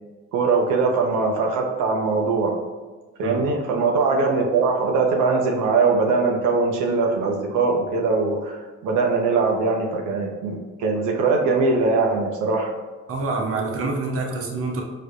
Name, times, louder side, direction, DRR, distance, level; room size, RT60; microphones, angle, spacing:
voice 1, 0.3-2.6 3.2-8.6 8.8-12.7, right 4 dB, 90° right, 1 dB, 0.5 m, -21 dB
voice 2, 13.1-14.8, right 3 dB, 50° right, 1 dB, 0.7 m, -26 dB
4.8 x 2.1 x 2.5 m, 1.3 s
cardioid pair, 90°, 30 cm